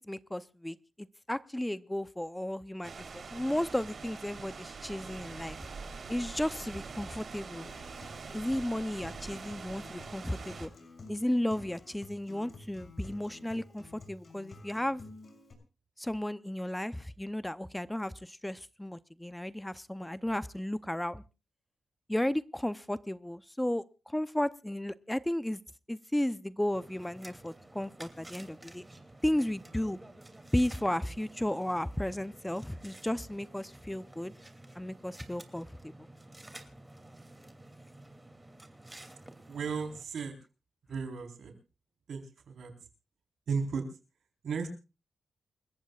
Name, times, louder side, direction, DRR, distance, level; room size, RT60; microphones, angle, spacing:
voice 1, 0.0-5.6 6.1-7.7 8.3-10.7 11.1-15.0 16.0-21.2 22.1-25.6 25.9-28.8 29.2-30.0 30.5-34.3 34.8-35.9, left 1 dB, 10° left, 14 dB, 0.7 m, -34 dB
sound 1, 2.8-10.7, right 4 dB, 60° right, 3.6 m, -44 dB
Acoustic guitar, 7.5-15.5, left 2 dB, 50° left, 6.0 m, -51 dB
sound 2, 26.7-40.0, right 1 dB, 15° right, 2.7 m, -52 dB
voice 2, 39.5-40.4 40.9-41.5 42.1-42.7 43.5-43.8 44.4-44.7, right 5 dB, 75° right, 5 dB, 4.1 m, -35 dB
29.0 x 14.5 x 2.4 m, 0.32 s
cardioid pair, 60°, 0 cm